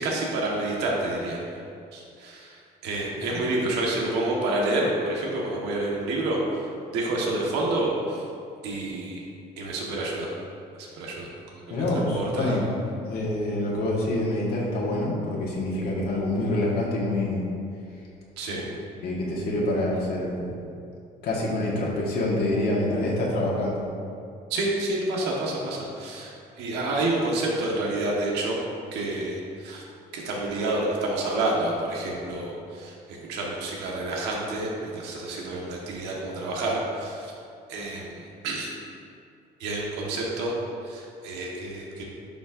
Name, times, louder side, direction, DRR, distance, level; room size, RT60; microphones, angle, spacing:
voice 1, 0.0-1.4 1.9-8.3 8.6-9.2 9.6-10.3 10.8-12.6 18.4-18.6 24.5-28.6 28.9-29.8 30.1-37.3 37.7-38.7 39.6-40.5 40.8-42.0, right 2 dB, 90° right, -3 dB, 1.3 m, -29 dB
voice 2, 11.7-12.6 13.1-17.5 19.0-20.5 21.2-23.8, left 1 dB, 70° left, -5 dB, 1.5 m, -26 dB
10.5 x 5.1 x 2.6 m, 2.5 s
cardioid pair, 110°, 17 cm